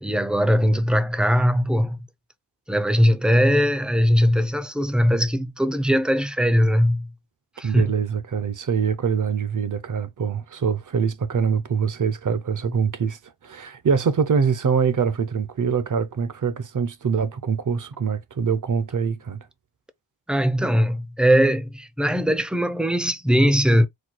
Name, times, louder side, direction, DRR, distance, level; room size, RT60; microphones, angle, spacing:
voice 1, 0.0-2.1 2.7-7.1 7.6-7.9 20.3-23.9, equal, ahead, 0.4 m, -20 dB
voice 2, 7.6-19.4, right 6 dB, 45° right, 0.6 m, -24 dB
4.3 x 2.3 x 4.4 m
wide cardioid pair, 145°, 43 cm